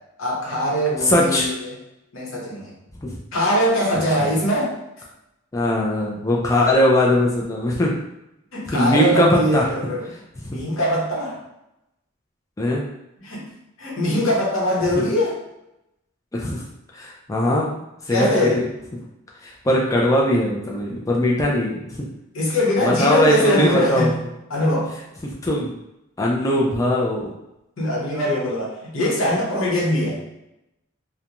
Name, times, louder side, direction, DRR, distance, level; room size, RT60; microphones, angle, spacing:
voice 1, 0.2-1.8 2.1-2.7 3.3-4.7 8.5-10.2 10.4-11.4 13.2-13.5 13.8-15.4 18.1-18.6 22.3-24.2 24.5-24.9 27.8-30.2, equal, 80° left, -4 dB, 0.9 m, -22 dB
voice 2, 1.0-1.5 3.0-3.1 3.9-4.0 5.5-7.9 8.7-9.7 12.6-12.9 16.3-16.6 16.9-17.7 18.1-18.6 19.4-21.8 22.8-24.1 25.2-25.7 26.2-27.3, left 1 dB, 15° left, -3 dB, 0.3 m, -20 dB
2.4 x 2.1 x 2.9 m, 0.88 s
head